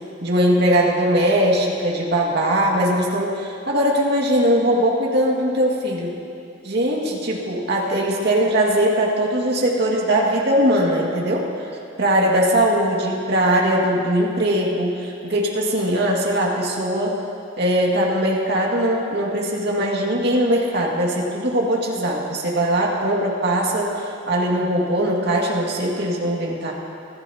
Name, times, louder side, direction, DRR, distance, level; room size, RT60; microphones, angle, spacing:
voice 1, 0.2-6.1 6.6-11.5 12.0-17.2 17.6-26.7, right 1 dB, 55° right, -2 dB, 2.1 m, -20 dB
24.0 x 12.5 x 2.9 m, 2.5 s
head